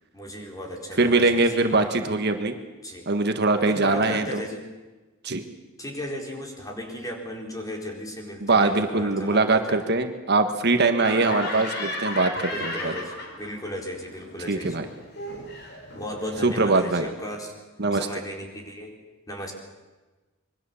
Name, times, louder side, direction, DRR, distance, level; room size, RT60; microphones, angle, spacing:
voice 1, 0.1-1.9 2.8-3.1 3.7-4.7 5.8-9.8 12.5-14.9 15.9-17.5 17.9-19.0 19.3-19.5, equal, 15° left, 1 dB, 4.4 m, -35 dB
voice 2, 1.0-2.6 3.1-4.4 5.2-5.4 8.4-12.9 14.5-14.8 16.4-17.0 17.8-18.1, right 3 dB, 55° right, 7 dB, 1.5 m, -22 dB
Laughter, 10.9-13.7 14.0-16.9, left 1 dB, 55° left, 4.9 m, -35 dB
26.0 x 23.0 x 7.1 m, 1.2 s
head